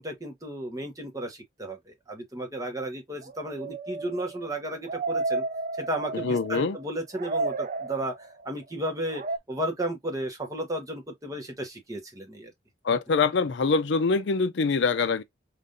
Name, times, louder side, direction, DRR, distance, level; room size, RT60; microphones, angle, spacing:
voice 1, 0.0-5.4 5.8-12.5, right 1 dB, 20° right, 1.0 m, -34 dB
sound 1, 3.2-6.8 7.1-8.4 9.1-9.4, right 3 dB, 40° right, 0.4 m, -32 dB
voice 2, 6.1-6.8 12.8-15.2, left 4 dB, 65° left, 0.4 m, -24 dB
4.9 x 2.5 x 2.5 m
head